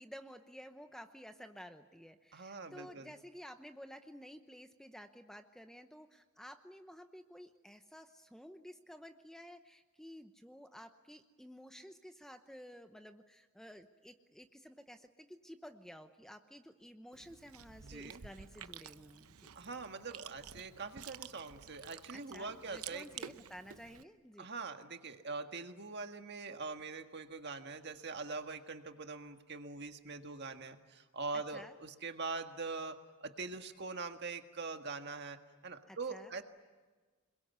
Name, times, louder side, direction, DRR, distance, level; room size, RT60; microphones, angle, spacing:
voice 1, 0.0-19.5 22.3-24.5 31.5-31.8 35.9-36.3, equal, ahead, 7 dB, 0.8 m, -53 dB
voice 2, 2.3-3.1 17.8-18.2 19.5-23.0 24.4-36.4, right 4 dB, 50° right, 6 dB, 1.7 m, -43 dB
Chewing mastication, 17.1-24.0, right 8 dB, 75° right, 0.8 m, -51 dB
28.5 x 21.5 x 9.5 m, 1.3 s
head